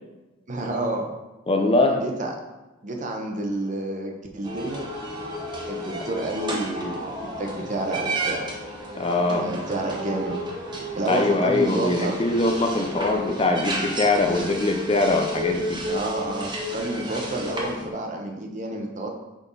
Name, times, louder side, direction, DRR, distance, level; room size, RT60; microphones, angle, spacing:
voice 1, 0.5-1.1 2.0-2.3 2.8-4.8 5.7-8.5 9.4-10.4 11.0-12.2 15.9-19.1, right 2 dB, 40° right, 2 dB, 0.9 m, -29 dB
voice 2, 1.5-2.0 9.0-9.5 11.1-15.8, left 2 dB, 30° left, 4 dB, 0.5 m, -22 dB
sound 1, 4.4-17.9, equal, 20° right, 1.1 m, -32 dB
6.2 x 5.4 x 4.1 m, 1.1 s
head